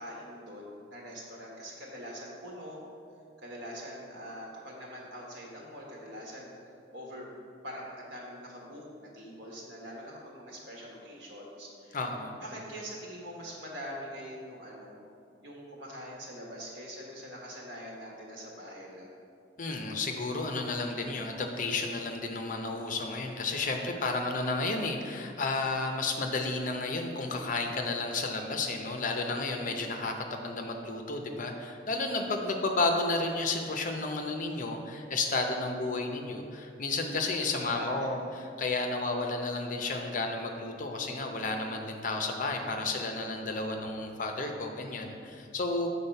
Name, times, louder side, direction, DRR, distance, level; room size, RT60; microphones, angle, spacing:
voice 1, 0.0-2.8 3.4-6.5 6.9-12.0 12.4-15.0 15.4-19.1 37.5-38.2, equal, 85° right, -2 dB, 1.6 m, -44 dB
voice 2, 11.9-12.4 19.6-45.9, left 3 dB, 50° left, 4 dB, 0.7 m, -32 dB
7.4 x 4.0 x 5.5 m, 2.4 s
head